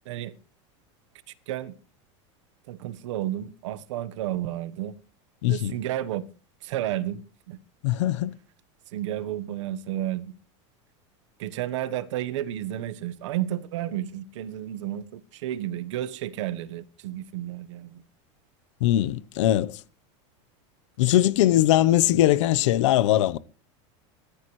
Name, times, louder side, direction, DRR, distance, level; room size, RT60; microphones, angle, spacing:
voice 1, 2.7-4.9 5.5-6.3 6.6-7.6 8.9-10.3 11.4-18.0, right 12 dB, 80° right, 1.2 m, -32 dB
voice 2, 5.4-5.7 7.8-8.3 18.8-19.8 21.0-23.4, left 13 dB, 80° left, 1.0 m, -21 dB
21.0 x 13.5 x 3.2 m
supercardioid pair, 160°, 15 cm